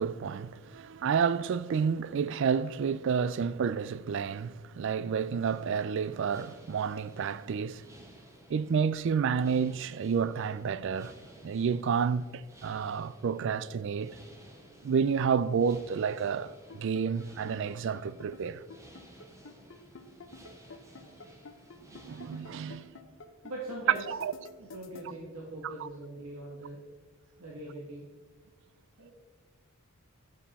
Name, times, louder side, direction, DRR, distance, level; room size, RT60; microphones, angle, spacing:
voice 1, 0.0-7.8 8.5-11.1 11.4-14.2 14.8-18.6 22.0-22.9 24.1-24.3 25.6-25.9, right 6 dB, 60° right, 0.3 m, -30 dB
sound 1, 5.4-22.9, right 1 dB, 15° right, 1.2 m, -56 dB
sound 2, 16.3-25.0, left 3 dB, 60° left, 0.8 m, -48 dB
voice 2, 23.4-24.0 24.6-26.8 27.4-28.0 29.0-29.1, right 1 dB, 85° right, 1.5 m, -41 dB
10.5 x 7.5 x 4.2 m
head